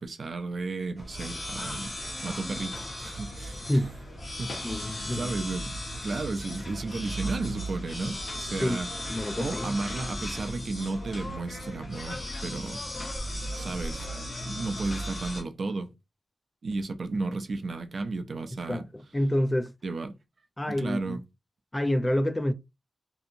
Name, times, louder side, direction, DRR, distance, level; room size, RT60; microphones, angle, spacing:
voice 1, 0.0-1.9 2.2-3.8 4.4-8.9 9.4-12.8 13.5-14.1 14.4-15.9 16.6-18.8 19.8-20.2 20.7-21.2, right 3 dB, 55° right, 0.4 m, -33 dB
sound 1, 1.0-15.4, equal, 45° left, 1.1 m, -36 dB
voice 2, 4.6-5.3 8.6-8.8 9.1-9.8 18.7-19.7 20.6-21.2 21.7-22.5, left 1 dB, 15° left, 0.3 m, -28 dB
2.7 x 2.5 x 2.6 m
wide cardioid pair, 135°, 0 cm